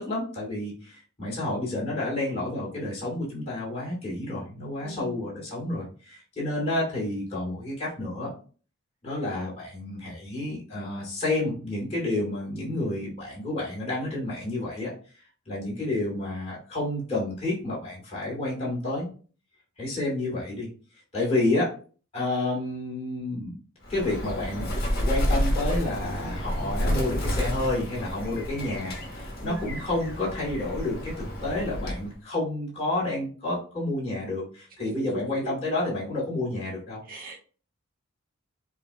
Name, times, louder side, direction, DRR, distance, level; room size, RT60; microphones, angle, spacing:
voice 1, 0.0-8.3 9.0-14.9 15.5-19.1 19.8-20.7 21.1-21.7 22.1-23.5 23.9-24.7 24.9-37.0, left 2 dB, 30° left, -7 dB, 2.5 m, -30 dB
voice 2, 4.8-5.3 21.1-21.3 29.4-29.7 34.8-35.4 37.0-37.4, right 2 dB, 45° right, -2 dB, 1.2 m, -39 dB
Bird, 23.8-32.1, equal, 50° left, 1.6 m, -30 dB
6.9 x 2.5 x 3.1 m, 0.39 s
head